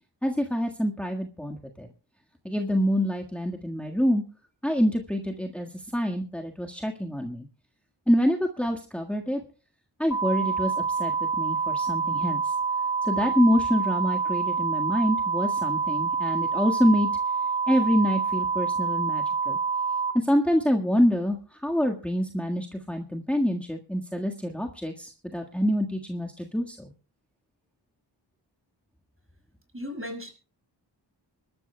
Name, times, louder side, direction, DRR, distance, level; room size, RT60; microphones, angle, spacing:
voice 1, 0.2-1.9 2.4-4.2 4.6-7.5 8.1-9.4 10.0-12.5 13.0-17.1 17.7-19.6 20.1-21.4 21.6-26.9, equal, 5° left, 1 dB, 1.7 m, -26 dB
sound 1, 10.1-20.1, right 5 dB, 45° left, 1.8 m, -27 dB
voice 2, 29.7-30.3, left 1 dB, 30° right, 6 dB, 5.9 m, -35 dB
25.0 x 13.0 x 2.3 m, 0.38 s
cardioid pair, 50°, 44 cm